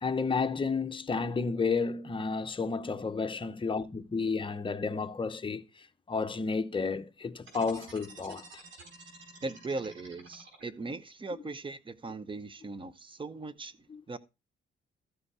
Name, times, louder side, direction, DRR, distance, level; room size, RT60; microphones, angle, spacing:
voice 1, 0.0-8.4 13.9-14.0, left 4 dB, 25° left, 0.9 m, -32 dB
sound 1, 7.4-11.0, right 2 dB, 80° right, 4.4 m, -51 dB
voice 2, 9.4-14.2, right 3 dB, 25° right, 0.8 m, -39 dB
13.5 x 5.2 x 4.8 m
cardioid pair, 90°, 20 cm